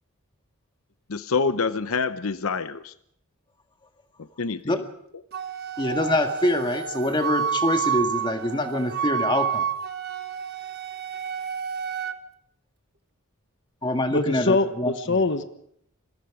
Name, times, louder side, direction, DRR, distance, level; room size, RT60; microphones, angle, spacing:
voice 1, 1.1-2.9 4.4-4.8, left 4 dB, 75° left, 12 dB, 0.8 m, -26 dB
Wind instrument woodwind instrument, 5.3-12.2, right 8 dB, 45° right, 1.2 m, -29 dB
voice 2, 5.8-9.7 13.8-14.9, left 1 dB, 20° left, 6 dB, 1.8 m, -25 dB
voice 3, 14.1-15.4, left 3 dB, 55° left, 10 dB, 1.2 m, -23 dB
27.0 x 22.0 x 5.0 m, 0.71 s
head